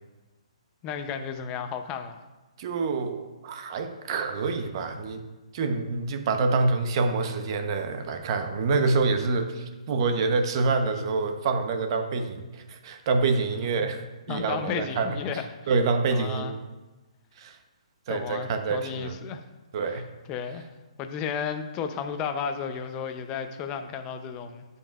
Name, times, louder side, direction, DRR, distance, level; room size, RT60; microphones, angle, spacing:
voice 1, 0.8-2.1 13.8-13.9 14.3-15.7 16.1-16.6 18.1-19.4 19.9-20.0 20.3-20.7 21.0-24.7, left 7 dB, 25° left, 7 dB, 0.6 m, -33 dB
voice 2, 2.6-5.2 5.5-15.2 15.7-16.6 17.4-17.6 18.1-19.2 19.7-20.0, right 4 dB, 40° right, 6 dB, 0.9 m, -27 dB
13.0 x 5.5 x 2.4 m, 1.2 s
hypercardioid pair, 150°, 4 cm